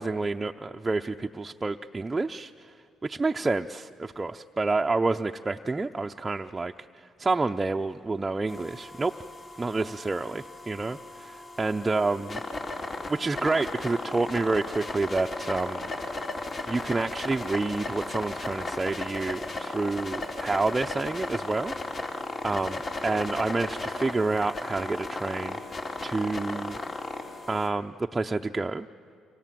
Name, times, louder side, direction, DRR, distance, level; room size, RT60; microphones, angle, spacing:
voice 1, 0.0-2.7 3.0-9.1 9.6-12.4 13.1-15.8 16.7-21.7 22.4-25.6 26.0-26.8 27.5-28.9, right 3 dB, 25° right, 3 dB, 0.7 m, -29 dB
sound 1, 8.5-27.7, left 2 dB, 40° left, 4.0 m, -36 dB
29.5 x 24.5 x 7.7 m, 2.3 s
supercardioid pair, 65°, 0 cm